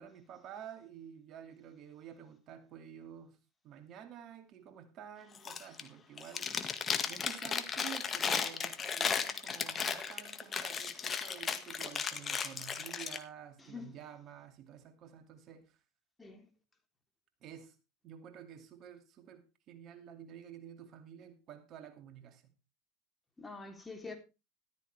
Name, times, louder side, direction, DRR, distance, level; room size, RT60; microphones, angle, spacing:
voice 1, 0.0-3.4 3.6-6.6 7.1-15.8 17.4-17.7 18.0-22.5, right 9 dB, 50° right, 2.4 m, -50 dB
Chewing mastication, 5.3-5.9 6.2-13.2, left 6 dB, 30° left, 1.9 m, -35 dB
voice 2, 13.6-13.9 16.2-16.5 23.4-24.2, left 4 dB, 15° left, 3.4 m, -46 dB
14.0 x 13.0 x 3.5 m
hypercardioid pair, 85°, 0 cm